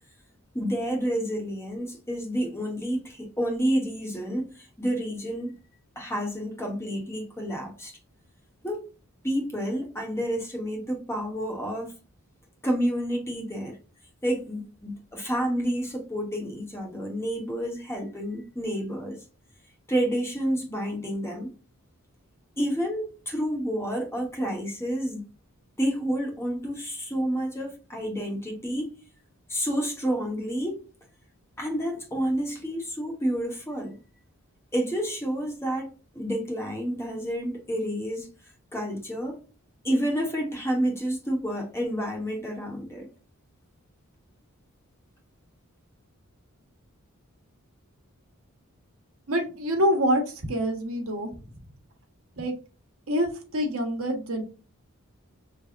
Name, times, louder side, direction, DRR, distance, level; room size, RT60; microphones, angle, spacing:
voice 1, 0.5-4.5 4.8-5.5 6.0-7.9 8.6-8.8 9.2-11.9 12.6-13.8 14.2-19.2 19.9-21.5 22.6-25.2 25.8-28.9 29.5-30.8 31.6-34.0 34.7-35.9 36.1-38.3 38.7-39.4 39.8-43.1, equal, 10° left, 1.1 m, -29 dB
voice 2, 49.3-51.3 52.4-52.5 53.1-54.4, equal, 70° right, 1.3 m, -26 dB
6.3 x 3.4 x 2.5 m
head